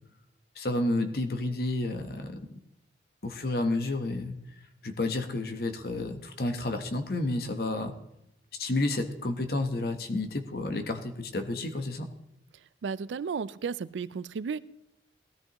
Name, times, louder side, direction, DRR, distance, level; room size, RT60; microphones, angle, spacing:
voice 1, 0.6-2.5 3.2-4.4 4.8-7.9 8.5-12.1, left 2 dB, 55° left, 7 dB, 1.0 m, -30 dB
voice 2, 12.8-14.6, right 5 dB, 85° right, 18 dB, 0.4 m, -33 dB
18.0 x 13.0 x 3.0 m, 0.84 s
head